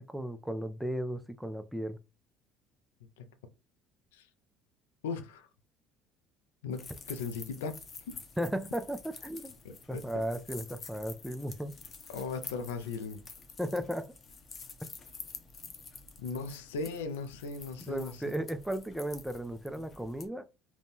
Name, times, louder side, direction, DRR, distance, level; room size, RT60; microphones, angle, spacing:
voice 1, 0.0-2.0 8.4-9.5 9.9-11.7 13.6-14.1 17.9-20.5, equal, 5° right, 0.4 m, -35 dB
voice 2, 5.0-5.5 6.6-7.8 8.1-8.2 9.6-10.1 12.1-13.2 16.2-18.4, left 4 dB, 85° left, 0.4 m, -38 dB
sound 1, 6.7-20.3, left 5 dB, 40° left, 0.6 m, -49 dB
2.6 x 2.1 x 3.4 m
hypercardioid pair, 70°, 0 cm